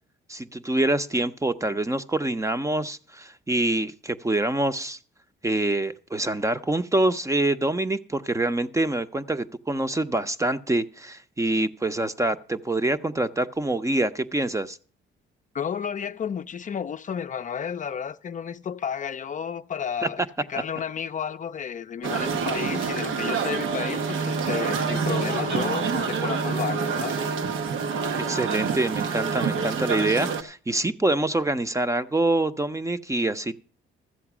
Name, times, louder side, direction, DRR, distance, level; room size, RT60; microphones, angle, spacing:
voice 1, 0.3-5.0 5.4-14.8 20.0-20.1 28.1-33.6, right 2 dB, 15° right, 0.7 m, -25 dB
voice 2, 15.5-20.2 20.5-27.1, left 7 dB, 40° left, 0.5 m, -32 dB
sound 1, 22.0-30.4, right 5 dB, 80° right, 1.1 m, -27 dB
13.5 x 7.8 x 6.1 m
cardioid pair, 90°, 20 cm